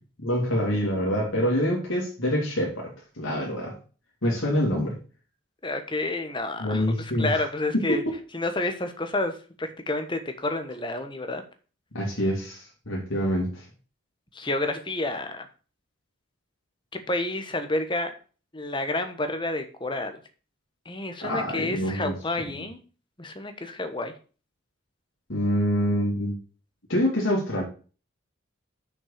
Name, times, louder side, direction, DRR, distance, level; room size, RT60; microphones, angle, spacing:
voice 1, 0.2-3.7 4.2-5.0 6.6-7.4 7.7-8.2 11.9-13.6 21.2-22.6 25.3-26.3 26.9-27.6, equal, 75° left, -2 dB, 2.6 m, -26 dB
voice 2, 5.6-8.0 8.3-11.4 14.3-15.5 17.1-18.1 18.5-20.2 20.8-22.8 23.2-24.1, left 2 dB, 25° left, 7 dB, 1.2 m, -29 dB
6.4 x 5.8 x 6.7 m, 0.38 s
head